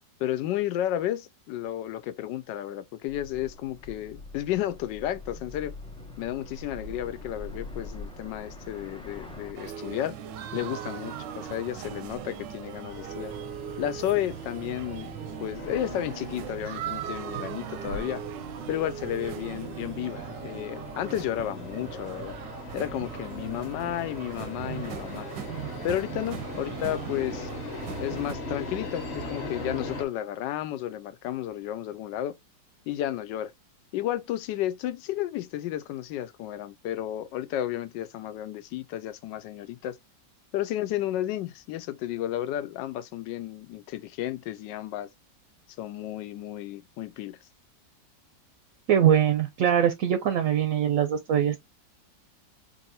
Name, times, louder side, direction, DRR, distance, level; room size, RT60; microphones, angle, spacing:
voice 1, 0.2-5.7 6.2-10.2 10.5-13.3 13.8-15.1 15.4-18.2 18.7-22.4 22.7-25.3 25.8-27.5 28.0-32.4 32.9-33.5 33.9-40.0 40.5-45.1 45.8-47.4, left 12 dB, 80° left, 1.2 m, -32 dB
sound 1, 3.1-9.5, left 2 dB, 5° left, 0.5 m, -43 dB
sound 2, 9.5-28.3, right 8 dB, 85° right, 1.3 m, -39 dB
sound 3, 12.9-30.0, left 2 dB, 40° left, 1.2 m, -40 dB
voice 2, 48.9-51.6, right 9 dB, 65° right, 0.8 m, -22 dB
4.4 x 2.7 x 2.8 m
omnidirectional pair, 1.9 m